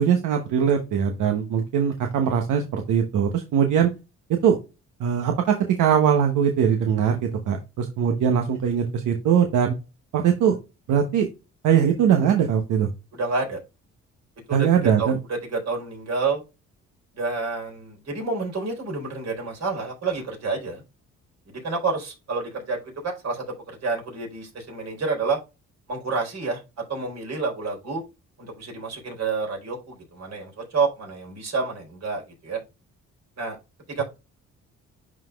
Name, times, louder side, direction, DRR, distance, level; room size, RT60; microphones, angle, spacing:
voice 1, 0.0-3.9 4.3-4.6 5.0-9.8 10.1-10.6 10.9-11.3 11.6-12.9 14.5-15.2, right 8 dB, 85° right, 4 dB, 0.9 m, -21 dB
voice 2, 13.1-13.6 14.5-16.4 17.1-20.8 21.5-25.4 25.9-28.0 28.4-32.6 33.4-33.6 33.9-34.0, right 4 dB, 60° right, 0 dB, 3.9 m, -29 dB
11.0 x 4.0 x 2.3 m, 0.27 s
cardioid pair, 90°, 30 cm